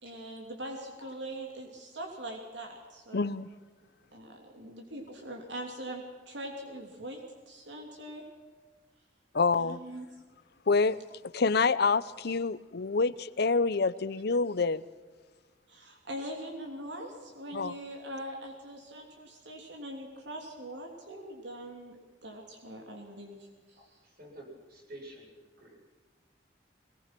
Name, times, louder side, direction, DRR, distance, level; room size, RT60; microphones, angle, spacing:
voice 1, 0.0-3.3 4.1-7.2 7.5-8.3 9.6-10.1 15.7-23.8, right 1 dB, 75° right, 2 dB, 3.1 m, -42 dB
voice 2, 3.1-3.5 9.3-9.8 10.7-11.0 11.3-14.8 17.5-17.7, left 4 dB, 65° left, 16 dB, 0.7 m, -27 dB
voice 3, 23.8-25.8, right 1 dB, 55° right, -1 dB, 7.9 m, -50 dB
22.0 x 20.0 x 6.1 m, 1.4 s
head